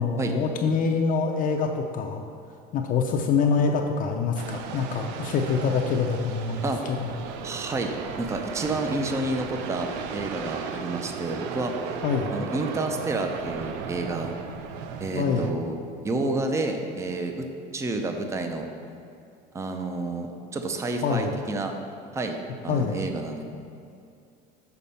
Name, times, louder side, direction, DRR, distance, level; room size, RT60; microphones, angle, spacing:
voice 1, 0.0-2.2 2.7-7.2 12.0-12.3 15.1-15.5 21.0-21.3 22.7-23.0, left 5 dB, 40° left, 2 dB, 0.5 m, -25 dB
sound 1, 4.4-15.5, right 6 dB, 75° right, 0.6 m, -36 dB
voice 2, 7.4-11.7 12.3-14.3 15.0-15.7 16.0-17.4 17.7-18.7 19.5-21.8 22.1-22.4 22.6-23.4, right 2 dB, 15° right, 5 dB, 0.5 m, -29 dB
6.9 x 4.1 x 5.6 m, 2.5 s
supercardioid pair, 120°, 21 cm